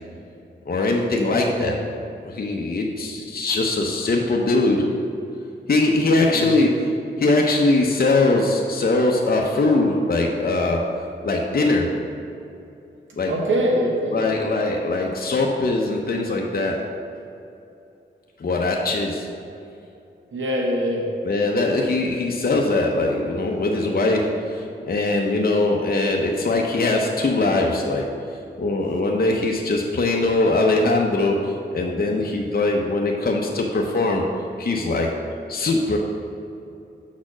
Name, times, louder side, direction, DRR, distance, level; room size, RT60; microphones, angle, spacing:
voice 1, 0.7-1.8 2.2-4.9 5.7-6.9 7.2-11.9 13.2-13.3 14.1-16.9 18.4-19.3 21.2-28.1 28.6-34.2 34.6-35.2 35.5-36.0, left 2 dB, 50° left, 0 dB, 0.8 m, -21 dB
voice 2, 1.2-1.8 6.3-6.5 13.1-14.3 20.3-21.1, equal, 90° right, -1 dB, 1.1 m, -24 dB
6.4 x 4.2 x 6.1 m, 2.6 s
cardioid pair, 50°, 19 cm